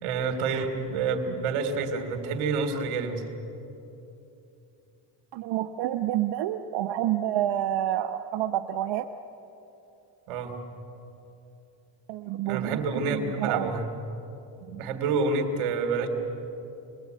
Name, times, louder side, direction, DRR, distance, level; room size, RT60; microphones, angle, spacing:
voice 1, 0.0-3.2 10.3-10.6 12.5-13.9 14.6-16.1, right 4 dB, 85° right, 5 dB, 3.4 m, -28 dB
voice 2, 5.3-9.1 12.1-13.7, right 12 dB, 65° right, 6 dB, 1.1 m, -28 dB
28.5 x 21.5 x 9.3 m, 2.9 s
supercardioid pair, 90°, 48 cm